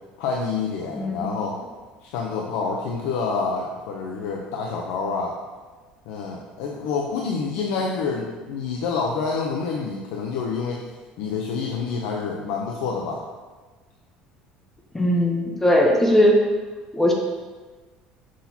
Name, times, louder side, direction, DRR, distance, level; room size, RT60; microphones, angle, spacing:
voice 1, 0.2-1.6 2.0-5.4 6.1-10.8 11.2-13.2, left 5 dB, 85° left, -1 dB, 0.6 m, -27 dB
voice 2, 1.0-1.3 14.9-16.4 16.9-17.1, equal, 10° left, 0 dB, 0.7 m, -19 dB
6.2 x 5.7 x 2.8 m, 1.3 s
cardioid pair, 145°, 3 cm